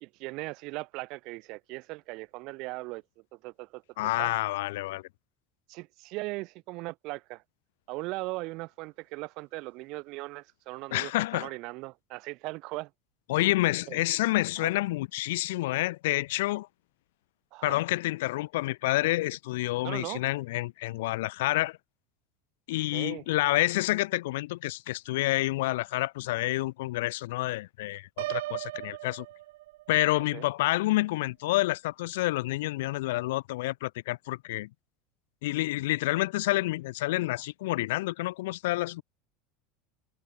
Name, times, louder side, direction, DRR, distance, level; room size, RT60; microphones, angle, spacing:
voice 1, 0.0-3.0 3.3-3.8 4.2-4.3 5.7-7.4 7.9-12.9 13.9-14.0 14.6-14.7 17.5-17.8 19.8-20.2 22.9-23.2 30.3-30.5, right 23 dB, 60° right, 1.7 m, -38 dB
voice 2, 4.0-5.0 10.9-11.5 13.3-16.7 17.6-21.8 22.7-29.3 29.9-34.7 35.4-39.0, left 18 dB, 80° left, 0.5 m, -28 dB
Piano, 28.2-30.1, right 17 dB, 80° right, 0.5 m, -36 dB
supercardioid pair, 110°, 0 cm